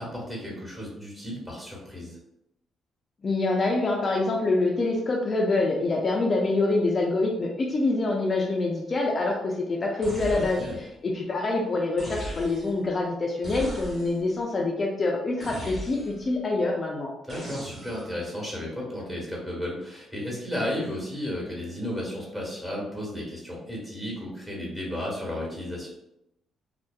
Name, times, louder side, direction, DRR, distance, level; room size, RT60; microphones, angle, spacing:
voice 1, 0.0-2.2 10.3-10.8 17.2-25.9, left 1 dB, 15° right, -3 dB, 1.2 m, -33 dB
voice 2, 3.2-10.6 11.0-17.1, left 2 dB, 40° left, -1 dB, 0.4 m, -25 dB
sound 1, 10.0-10.9 12.0-12.8 13.4-14.3 15.4-16.3 17.3-18.2, equal, 40° right, 1.1 m, -38 dB
2.6 x 2.1 x 2.2 m, 0.82 s
cardioid pair, 90°, 0 cm